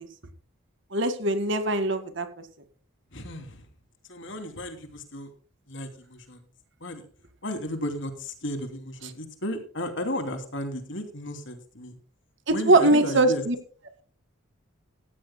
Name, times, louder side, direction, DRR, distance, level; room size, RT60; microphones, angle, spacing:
voice 1, 0.9-2.3 12.5-13.6, right 2 dB, 55° right, 9 dB, 2.0 m, -21 dB
voice 2, 3.1-3.6 4.1-5.3 5.7-6.4 6.8-7.0 7.4-12.0 12.5-13.4, left 1 dB, 55° left, 7 dB, 2.9 m, -34 dB
16.5 x 15.0 x 2.2 m, 0.41 s
head